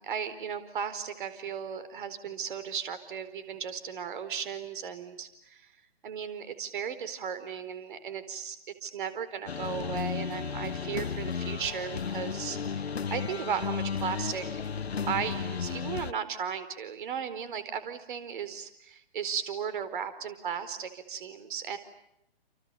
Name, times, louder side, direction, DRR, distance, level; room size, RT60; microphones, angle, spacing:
voice 1, 0.0-5.7 6.0-8.6 8.8-14.6 15.1-21.8, right 7 dB, 55° right, 12 dB, 4.5 m, -36 dB
sound 1, 9.5-16.1, left 6 dB, 85° left, 1.2 m, -34 dB
30.0 x 29.0 x 6.9 m, 0.79 s
hypercardioid pair, 135°, 31 cm